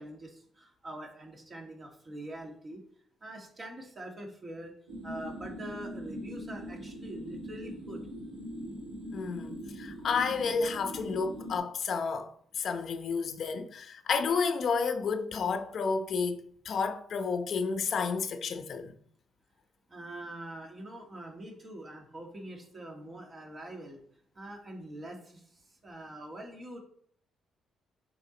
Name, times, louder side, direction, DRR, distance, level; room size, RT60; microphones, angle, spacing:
voice 1, 0.0-2.8 3.2-4.7 5.0-8.0 19.9-24.0 24.4-25.4 25.8-26.8, right 1 dB, 35° right, 2.2 m, -44 dB
sound 1, 4.9-11.6, equal, 85° right, 2.1 m, -41 dB
voice 2, 9.1-18.9, left 5 dB, 60° left, 0.8 m, -31 dB
7.4 x 4.6 x 4.0 m
cardioid pair, 90°, 0 cm